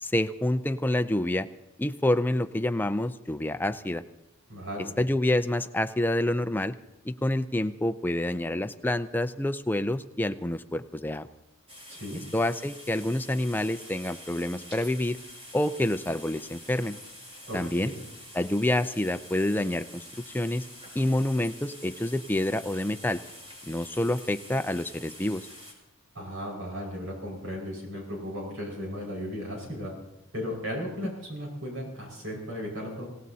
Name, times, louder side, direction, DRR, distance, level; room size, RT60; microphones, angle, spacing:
voice 1, 0.0-1.5 1.8-4.0 5.0-6.7 7.0-11.3 12.3-15.2 15.5-17.0 17.5-17.9 18.3-20.0 20.3-20.7 20.9-23.2 23.7-25.5, left 1 dB, 10° left, 10 dB, 0.4 m, -27 dB
voice 2, 4.5-4.9 11.9-12.2 17.5-18.0 26.1-29.9 30.3-33.1, equal, 70° right, -1 dB, 5.3 m, -36 dB
sound 1, 11.7-25.7, equal, 25° right, 6.1 m, -47 dB
26.5 x 17.5 x 2.8 m, 0.92 s
head